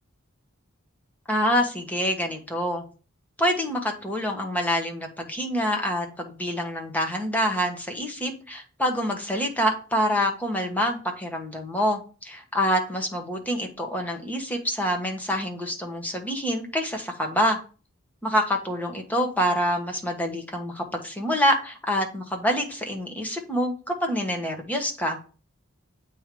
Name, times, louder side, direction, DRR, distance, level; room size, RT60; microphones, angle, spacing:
voice 1, 1.3-2.8 3.4-17.6 18.2-25.2, equal, 10° left, 2 dB, 1.2 m, -26 dB
8.2 x 3.3 x 5.2 m, 0.37 s
head